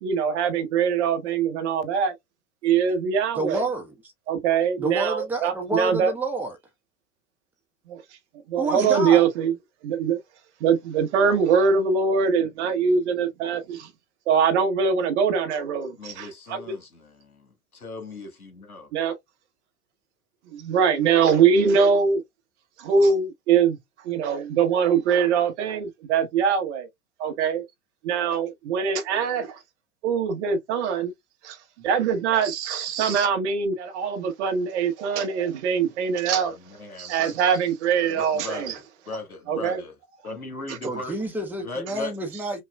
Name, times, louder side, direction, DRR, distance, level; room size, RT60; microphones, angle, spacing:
voice 1, 0.0-2.1 2.6-3.6 4.3-6.1 7.9-8.0 8.5-9.5 9.8-10.2 10.6-13.9 14.3-16.6 18.9-19.1 20.5-22.2 22.8-23.8 24.0-26.9 27.2-27.6 28.0-29.6 30.0-31.1 31.4-36.5 37.0-38.8 39.5-39.8 40.7-40.8, right 6 dB, 50° right, 1.1 m, -23 dB
voice 2, 3.3-3.9 4.8-6.6 8.5-9.3 40.8-42.6, right 2 dB, 5° right, 0.9 m, -29 dB
voice 3, 16.0-18.9 36.4-37.3 38.1-38.8 39.1-39.9 40.2-41.2 41.6-42.1, left 2 dB, 85° left, 1.5 m, -37 dB
5.5 x 2.3 x 2.2 m
figure-of-eight pair, 90°, 42 cm